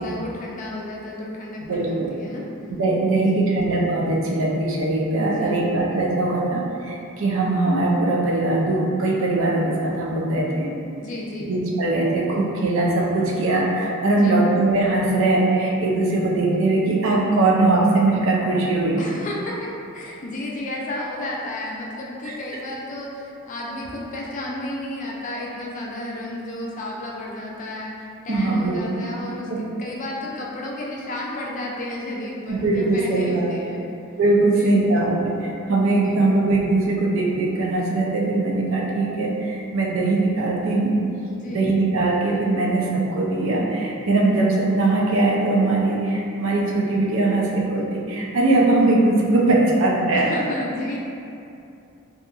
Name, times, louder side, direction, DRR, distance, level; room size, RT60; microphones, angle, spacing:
voice 1, 0.0-2.5 3.0-3.8 5.2-5.8 11.0-11.5 14.1-14.4 19.0-33.8 34.4-34.9 36.0-36.3 41.3-41.6 50.1-51.0, left 1 dB, 35° left, -3 dB, 0.3 m, -32 dB
voice 2, 1.7-2.1 2.7-10.7 11.5-19.0 22.3-22.4 28.3-28.8 29.5-29.6 32.5-33.5 34.2-41.0 41.5-50.3, right 2 dB, 60° right, -2 dB, 0.4 m, -21 dB
2.7 x 2.4 x 2.3 m, 2.6 s
head